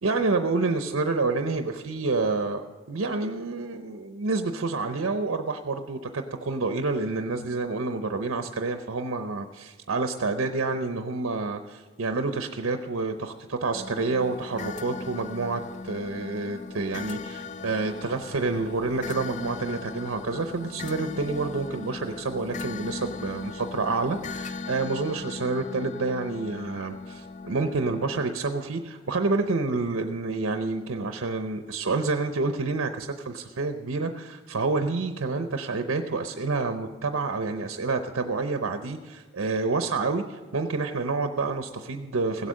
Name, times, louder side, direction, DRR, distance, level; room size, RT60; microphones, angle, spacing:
voice 1, 0.0-42.5, right 3 dB, 75° right, 7 dB, 0.7 m, -28 dB
sound 1, 13.7-28.2, left 4 dB, 35° left, 0.3 m, -38 dB
16.5 x 8.2 x 6.3 m, 1.4 s
head